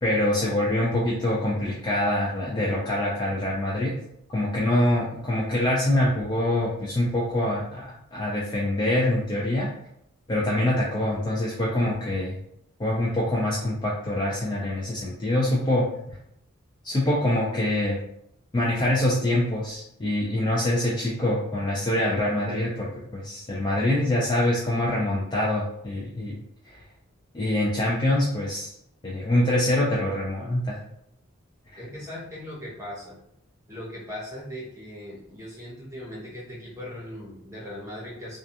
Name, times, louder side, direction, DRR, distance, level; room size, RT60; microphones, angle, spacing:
voice 1, 0.0-3.9 4.3-7.8 8.1-9.7 10.3-12.4 12.8-16.2 16.8-18.0 18.5-26.3 27.3-28.7 29.0-30.8, left 1 dB, 20° left, -5 dB, 0.3 m, -25 dB
voice 2, 31.8-33.2 33.7-38.4, left 1 dB, 15° right, -6 dB, 0.7 m, -39 dB
2.3 x 2.2 x 2.7 m, 0.75 s
head